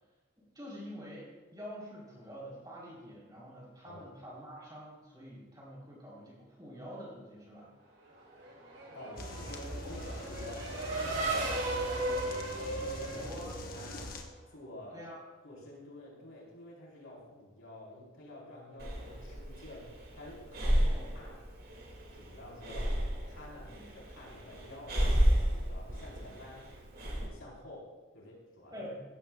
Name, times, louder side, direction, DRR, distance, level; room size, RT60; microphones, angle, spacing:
voice 1, 0.4-7.7 13.0-13.6 14.9-15.2 20.6-21.2 23.6-23.9 28.7-29.0, equal, 20° right, -6 dB, 4.4 m, -47 dB
Race car auto racing / Accelerating revving vroom, 8.2-14.3, right 2 dB, 75° right, 4.0 m, -36 dB
voice 2, 8.9-11.7 12.1-14.2 14.5-15.1 15.4-21.4 22.1-26.7 27.0-28.9, left 1 dB, 85° left, -3 dB, 4.5 m, -50 dB
sound 1, 9.2-14.2, left 1 dB, 45° left, 1.2 m, -43 dB
Breathing, 18.8-27.3, equal, 45° right, 2.5 m, -32 dB
15.5 x 14.0 x 2.4 m, 1.2 s
head